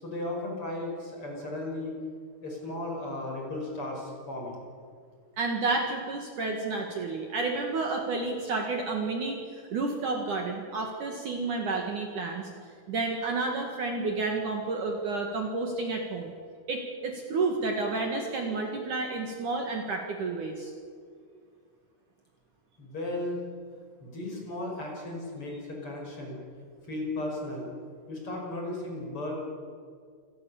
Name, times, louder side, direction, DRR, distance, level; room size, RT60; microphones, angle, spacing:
voice 1, 0.0-2.0 2.4-4.6 22.8-23.4 24.0-26.4 26.9-27.7 28.1-29.3, left 1 dB, 30° left, 0 dB, 6.2 m, -35 dB
voice 2, 5.4-12.5 12.9-16.3 16.7-20.7, right 3 dB, 55° right, 2 dB, 2.9 m, -30 dB
28.0 x 19.0 x 7.2 m, 2.2 s
omnidirectional pair, 4.9 m